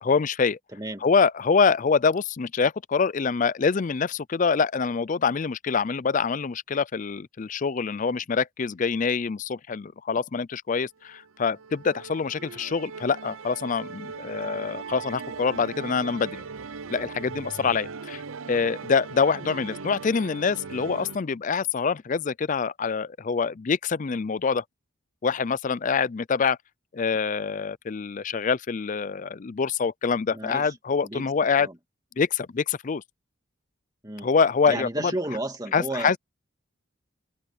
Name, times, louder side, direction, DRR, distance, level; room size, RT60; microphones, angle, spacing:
voice 1, 0.0-0.6 1.0-16.4 16.9-18.2 18.5-24.6 25.2-26.6 26.9-31.7 32.2-33.0 34.2-35.1 35.7-36.2, left 5 dB, 35° left, 0.4 m, -25 dB
voice 2, 0.7-1.1 30.3-30.8 31.0-31.8 34.0-34.3 34.7-36.2, right 1 dB, 20° right, 2.5 m, -33 dB
Musical instrument, 11.1-21.2, right 5 dB, 75° right, 0.7 m, -39 dB
head